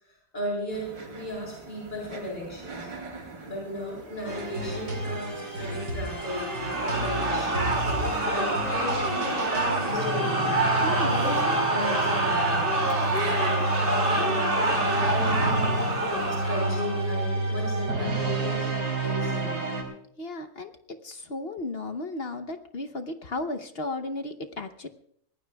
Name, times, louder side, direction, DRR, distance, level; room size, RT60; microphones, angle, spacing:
voice 1, 0.3-2.9 3.4-7.7 8.2-10.6 11.0-12.6 13.2-18.7 19.0-19.6, equal, 25° left, -3 dB, 7.7 m, -35 dB
sound 1, 0.7-16.5, right 3 dB, 90° right, 3.3 m, -42 dB
sound 2, 4.2-19.8, right 2 dB, 60° right, 4.2 m, -30 dB
sound 3, 6.1-17.1, right 1 dB, 30° right, 2.1 m, -27 dB
voice 2, 10.8-11.2 20.2-20.7 21.0-24.9, left 2 dB, 45° left, 7 dB, 0.9 m, -34 dB
24.0 x 19.0 x 2.3 m, 0.66 s
omnidirectional pair, 1.9 m